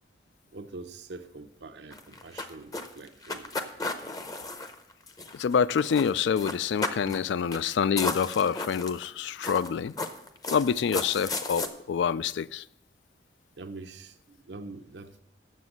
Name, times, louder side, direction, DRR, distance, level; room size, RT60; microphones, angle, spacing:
voice 1, 0.5-3.6 7.0-7.3 13.6-15.2, right 3 dB, 80° right, 0.7 m, -44 dB
sound 1, 1.9-5.5 5.8-6.1 6.4-7.2 7.5-7.6 8.0-9.0 9.4-11.7, left 3 dB, 20° left, 0.6 m, -34 dB
voice 2, 5.3-10.0 10.5-12.6, left 7 dB, 85° left, 0.3 m, -27 dB
7.5 x 7.1 x 7.7 m
head